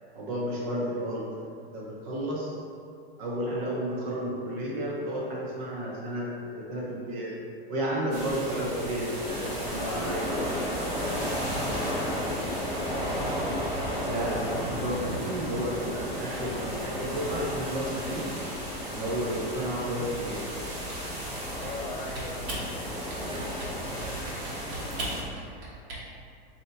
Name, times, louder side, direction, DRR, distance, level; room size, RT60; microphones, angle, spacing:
voice 1, 0.1-1.3 1.6-2.6 3.2-7.4 7.7-10.2 14.0-18.3 18.9-20.5, right 1 dB, 35° right, -4 dB, 0.8 m, -32 dB
sound 1, 8.1-25.2, equal, 10° right, 0.4 m, -33 dB
voice 2, 9.8-13.0 21.5-23.1, left 1 dB, 30° left, -4 dB, 0.7 m, -40 dB
Typing, 20.8-21.9 22.2-22.7 23.1-23.8 24.0-26.0, right 2 dB, 90° right, 1.2 m, -38 dB
3.3 x 2.9 x 3.9 m, 2.3 s
supercardioid pair, 170°, 31 cm